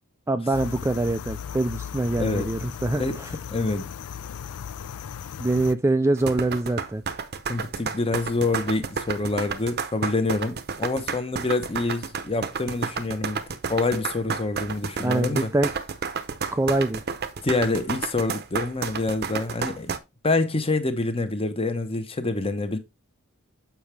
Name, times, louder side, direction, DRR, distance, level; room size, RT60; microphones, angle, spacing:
voice 1, 0.3-3.4 5.4-7.0 15.0-15.7 16.5-17.0, right 2 dB, 10° right, 0.3 m, -24 dB
sound 1, 0.5-5.7, left 8 dB, 80° left, 0.4 m, -36 dB
voice 2, 3.5-3.9 7.5-13.4 13.7-15.5 17.4-19.9 20.2-22.8, left 2 dB, 25° left, 0.9 m, -26 dB
sound 2, 6.2-20.0, right 5 dB, 45° right, 0.7 m, -31 dB
7.2 x 6.0 x 3.3 m
head